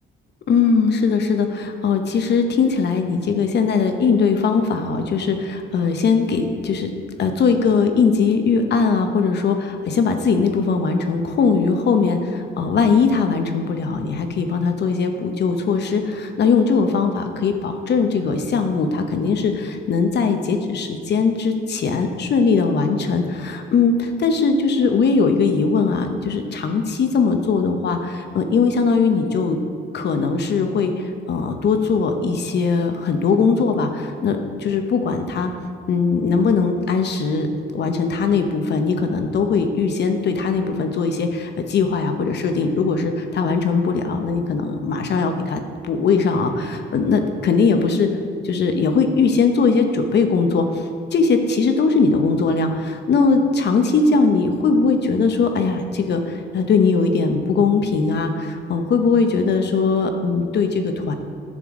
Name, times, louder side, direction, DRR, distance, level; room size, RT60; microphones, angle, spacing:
voice 1, 0.5-6.9 7.2-29.6 29.9-35.5 35.9-37.5 37.7-48.1 48.4-50.8 51.1-61.1, left 4 dB, 60° left, 6 dB, 0.9 m, -20 dB
11.0 x 6.8 x 3.7 m, 2.3 s
cardioid pair, 90°, 20 cm